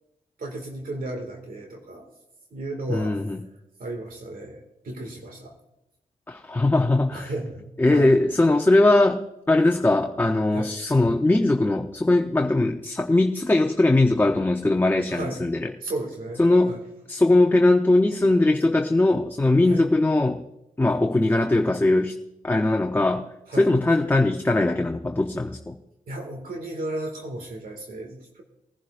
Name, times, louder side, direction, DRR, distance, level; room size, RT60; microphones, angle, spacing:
voice 1, 0.4-2.1 2.5-3.2 3.8-5.6 7.1-7.7 7.9-8.2 10.5-10.7 15.1-15.4 15.8-16.4 16.7-16.8 19.7-19.8 23.5-23.7 26.1-28.4, right 1 dB, 75° right, 2 dB, 2.1 m, -34 dB
voice 2, 2.9-3.4 6.3-7.3 7.8-15.7 16.4-16.8 17.1-20.4 20.8-22.2 22.4-25.8, left 2 dB, 15° left, 3 dB, 0.7 m, -20 dB
20.0 x 11.0 x 2.5 m, 0.88 s
cardioid pair, 90°, 15 cm